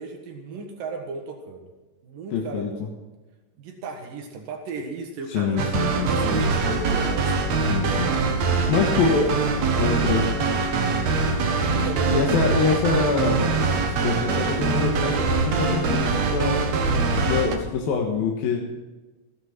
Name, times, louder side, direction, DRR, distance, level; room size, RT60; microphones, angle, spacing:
voice 1, 0.0-1.7 2.0-2.9 3.6-7.4 8.3-8.9 9.2-9.4 9.7-10.2 11.7-12.3, right 4 dB, 75° right, 4 dB, 3.2 m, -35 dB
voice 2, 2.3-2.7 5.3-6.1 7.7-8.1 8.7-9.3 9.8-10.2 12.1-13.5 14.0-16.6 17.1-18.6, left 5 dB, 85° left, 0 dB, 3.3 m, -25 dB
sound 1, 5.6-17.6, right 4 dB, 55° right, 2.5 m, -23 dB
15.5 x 12.5 x 6.0 m, 1.2 s
omnidirectional pair, 4.1 m